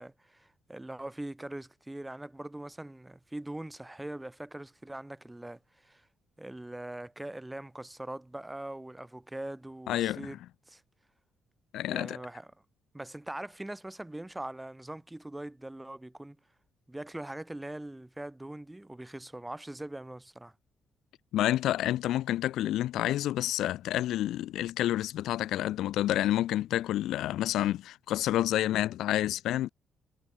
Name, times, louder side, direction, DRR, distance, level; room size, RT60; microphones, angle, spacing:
voice 1, 0.0-6.1 6.4-10.4 10.7-10.8 11.9-12.5 12.9-16.4 16.9-20.5, right 1 dB, 10° right, 3.8 m, -42 dB
voice 2, 9.9-10.3 11.7-12.2 21.3-29.7, left 13 dB, 85° left, 1.2 m, -29 dB
cardioid pair, 90°, 0 cm